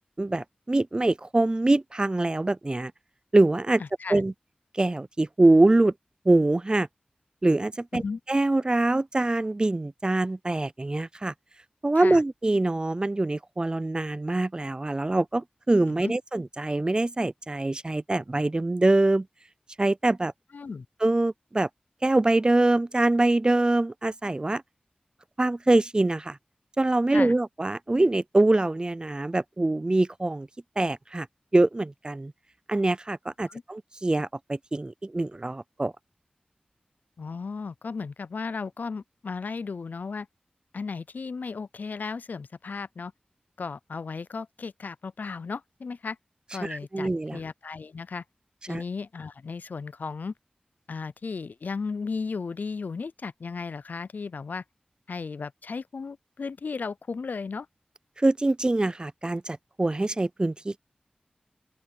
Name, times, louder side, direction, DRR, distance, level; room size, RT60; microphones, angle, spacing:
voice 1, 0.2-2.9 3.3-3.8 4.1-4.3 4.7-5.9 6.3-6.9 7.4-8.0 8.3-11.3 11.8-19.3 19.8-20.3 21.0-21.7 22.0-24.6 25.4-26.4 26.8-30.5 30.8-31.3 31.5-32.3 32.7-35.9 46.6-47.4 48.7-48.8 58.2-60.8, right 2 dB, 30° right, 0.4 m, -24 dB
voice 2, 3.8-4.2 7.9-8.2 12.0-12.2 16.0-16.1 20.5-20.9 27.1-27.3 33.5-33.6 37.2-40.3 40.7-43.1 43.6-46.2 46.5-48.2 48.7-50.3 50.9-54.6 55.1-57.7, left 4 dB, 80° left, 0.4 m, -35 dB
open air
wide cardioid pair, 55°, 3 cm